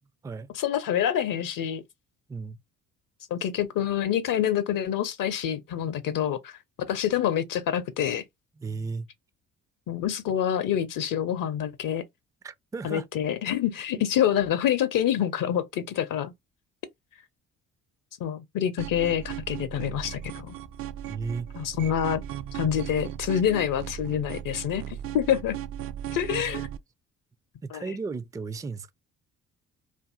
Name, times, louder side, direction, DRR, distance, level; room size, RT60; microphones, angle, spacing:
voice 1, 0.5-1.8 3.3-8.2 9.9-12.0 12.8-16.3 18.2-20.6 21.6-22.2 22.5-24.8 25.1-25.6 26.1-26.7 27.7-27.9, left 10 dB, 55° left, 0.6 m, -27 dB
voice 2, 8.6-9.1 12.4-13.1 21.1-21.5 27.6-28.9, right 4 dB, 10° right, 0.3 m, -34 dB
sound 1, 18.8-26.8, right 11 dB, 60° right, 0.5 m, -37 dB
2.6 x 2.5 x 2.4 m
hypercardioid pair, 50°, 39 cm